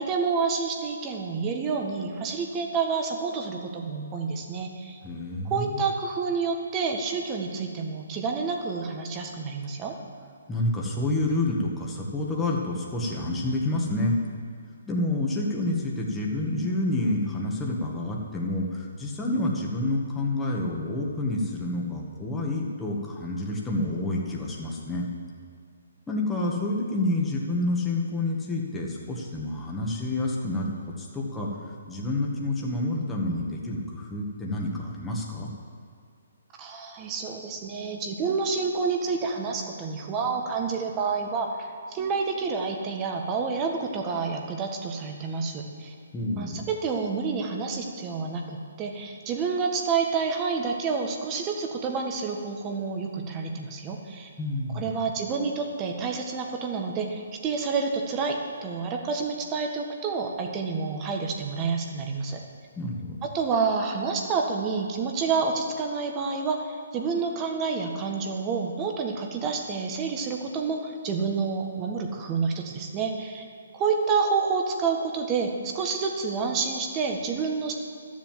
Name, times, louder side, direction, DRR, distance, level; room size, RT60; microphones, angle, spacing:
voice 1, 0.0-5.0 5.5-9.9 36.6-45.9 46.4-54.3 54.7-62.4 63.2-73.4 73.7-77.7, right 5 dB, 25° right, 2 dB, 1.6 m, -29 dB
voice 2, 5.0-5.8 10.5-14.2 14.8-25.1 26.1-30.7 31.0-35.5 46.1-46.7 54.4-54.9 62.8-63.2, left 2 dB, 10° left, -2 dB, 1.9 m, -28 dB
12.5 x 7.6 x 7.7 m, 2.2 s
hypercardioid pair, 145°, 0 cm